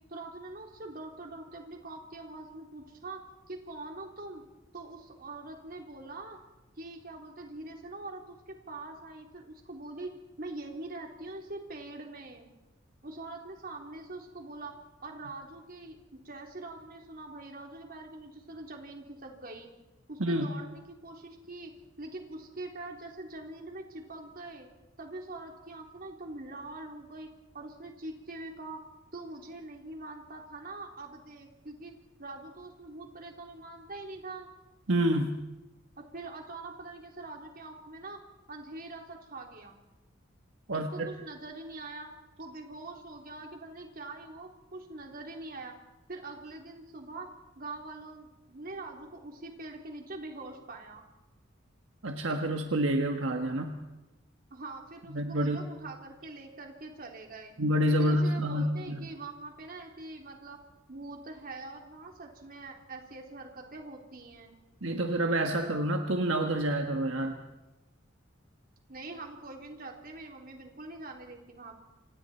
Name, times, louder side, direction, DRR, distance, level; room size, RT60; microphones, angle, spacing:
voice 1, 0.1-3.2 3.5-4.4 4.7-6.4 6.8-12.5 13.0-14.7 15.0-19.7 20.1-21.7 22.0-24.7 25.0-27.3 27.5-28.8 29.1-31.9 32.2-34.5 36.0-38.2 38.5-39.8 40.7-42.1 42.4-45.8 46.1-47.3 47.6-51.1 54.5-57.6 58.0-60.6 60.9-64.6 68.9-71.8, right 2 dB, 50° right, 2 dB, 3.7 m, -43 dB
voice 2, 20.2-20.6 34.9-35.4 40.7-41.1 52.0-53.8 55.1-55.6 57.6-59.0 64.8-67.4, right 1 dB, 75° right, 4 dB, 1.5 m, -28 dB
29.0 x 26.5 x 4.5 m, 1.0 s
head